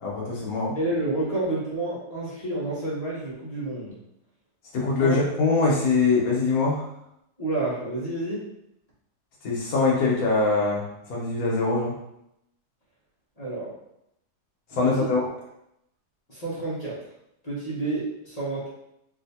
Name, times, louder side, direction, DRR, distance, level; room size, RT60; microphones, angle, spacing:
voice 1, 0.0-0.8 4.7-6.9 9.4-10.8 11.1-11.9 14.7-15.2, left 3 dB, 65° left, -4 dB, 1.4 m, -23 dB
voice 2, 0.7-4.0 5.0-5.2 7.4-8.4 13.4-13.7 14.8-15.1 16.3-17.0 17.4-18.7, right 2 dB, 30° left, -8 dB, 0.9 m, -29 dB
3.4 x 2.7 x 2.7 m, 0.80 s
omnidirectional pair, 1.8 m